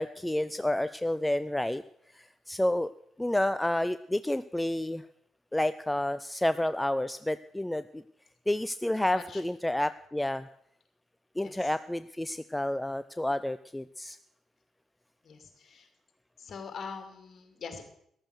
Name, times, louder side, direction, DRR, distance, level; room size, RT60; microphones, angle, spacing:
voice 1, 0.0-1.8 2.1-2.9 3.2-5.1 5.5-8.0 8.5-10.5 11.4-14.2, left 1 dB, 10° left, 14 dB, 0.4 m, -30 dB
voice 2, 9.0-9.4 11.4-11.7 15.2-15.9 16.4-17.8, left 5 dB, 45° left, 6 dB, 2.6 m, -43 dB
14.0 x 11.0 x 6.5 m, 0.70 s
figure-of-eight pair, 40°, 0 cm